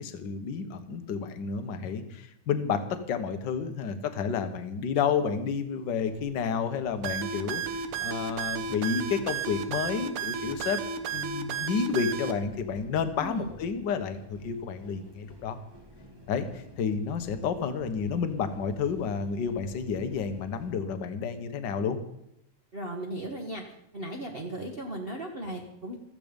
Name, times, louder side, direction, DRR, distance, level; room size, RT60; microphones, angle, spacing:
voice 1, 0.0-10.8 11.1-15.6 16.3-22.0, left 6 dB, 55° left, 8 dB, 1.3 m, -30 dB
sound 1, 6.0-20.7, equal, 15° right, 0.9 m, -51 dB
sound 2, 7.0-12.3, right 6 dB, 85° right, 2.6 m, -33 dB
voice 2, 22.7-23.6 23.9-26.0, right 1 dB, 40° right, 0 dB, 0.7 m, -36 dB
15.5 x 14.0 x 5.3 m, 0.78 s
omnidirectional pair, 3.5 m